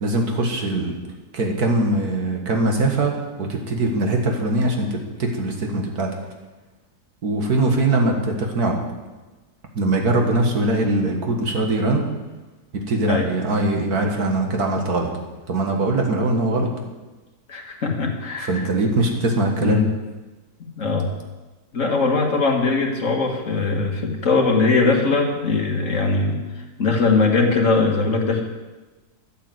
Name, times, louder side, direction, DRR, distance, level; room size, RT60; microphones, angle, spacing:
voice 1, 0.0-1.0 1.3-6.1 7.2-8.8 9.8-12.0 12.7-15.1 15.5-16.7 18.4-19.8, right 2 dB, 70° right, 2 dB, 2.2 m, -21 dB
voice 2, 17.5-18.7 19.6-19.9 20.8-21.1 21.7-26.4 26.8-28.4, left 3 dB, 50° left, 1 dB, 2.2 m, -20 dB
12.0 x 8.7 x 7.8 m, 1.2 s
omnidirectional pair, 1.7 m